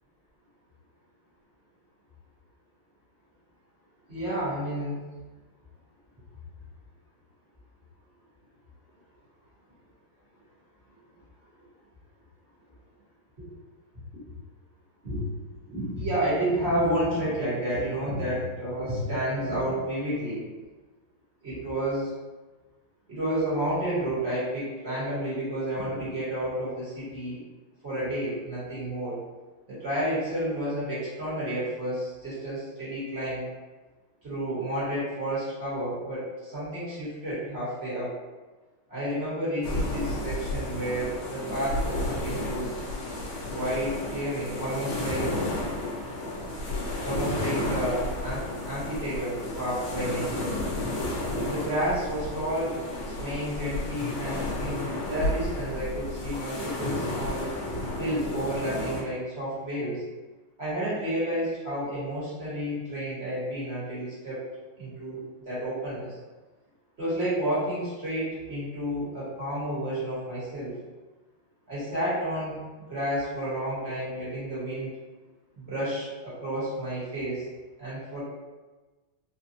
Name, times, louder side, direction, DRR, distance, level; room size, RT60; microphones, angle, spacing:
voice 1, 4.1-5.0 15.0-15.3 15.6-20.4 21.4-22.1 23.1-27.4 27.8-29.1 29.7-33.4 34.2-38.1 38.9-42.7 43.5-45.3 47.0-50.5 51.4-57.5 58.0-60.0 60.6-64.4 64.8-66.2 67.0-70.7 71.7-72.6 72.9-74.9 75.5-77.4 77.8-78.2, right 1 dB, 40° right, -11 dB, 1.3 m, -31 dB
sound 1, 39.6-59.0, left 1 dB, 70° left, 1.4 m, -32 dB
4.1 x 2.2 x 2.7 m, 1.2 s
omnidirectional pair, 2.2 m